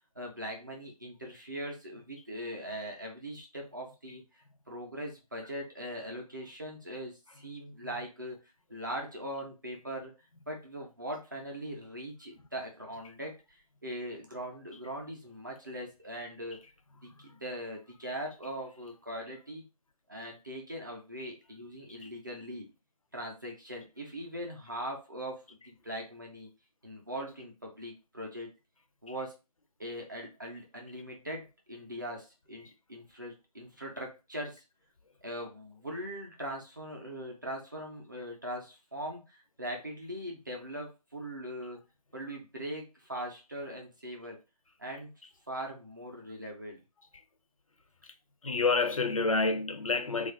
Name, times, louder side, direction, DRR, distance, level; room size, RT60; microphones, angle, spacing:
voice 1, 0.2-4.2 4.7-8.4 8.7-10.1 10.5-16.6 17.0-19.6 20.1-22.7 23.1-26.5 26.8-28.5 29.0-29.3 29.8-34.6 35.2-41.8 42.1-44.4 44.8-45.1 45.5-46.8, equal, 30° right, 0.6 m, -41 dB
voice 2, 48.4-50.3, left 3 dB, 55° left, 0.5 m, -29 dB
2.4 x 2.3 x 3.6 m
figure-of-eight pair, 170°, 20 cm